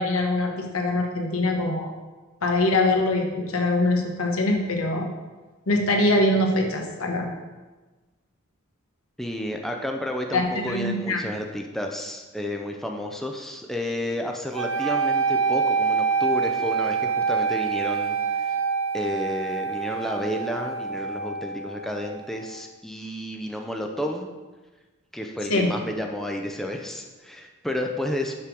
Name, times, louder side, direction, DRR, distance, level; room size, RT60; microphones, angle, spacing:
voice 1, 0.0-1.9 2.4-5.1 5.7-7.3 10.3-11.2 25.5-25.7, left 2 dB, 90° left, 2 dB, 1.2 m, -23 dB
voice 2, 9.2-18.6 18.9-24.3 25.1-28.3, left 1 dB, ahead, 2 dB, 0.5 m, -31 dB
sound 1, 14.5-22.6, right 5 dB, 70° right, 0.7 m, -26 dB
5.8 x 5.0 x 6.2 m, 1.2 s
head